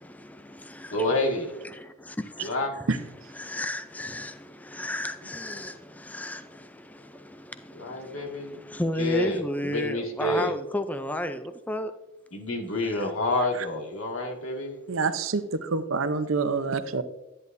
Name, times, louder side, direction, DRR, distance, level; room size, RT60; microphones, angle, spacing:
voice 1, 0.0-2.9 3.4-11.9 12.9-13.0, left 1 dB, 10° left, 0.4 m, -34 dB
voice 2, 0.9-1.5 2.4-2.7 7.7-8.6 9.0-10.5 12.3-14.8, left 2 dB, 85° left, 2.0 m, -28 dB
voice 3, 14.9-17.0, right 4 dB, 70° right, 0.7 m, -27 dB
10.5 x 9.7 x 2.6 m
head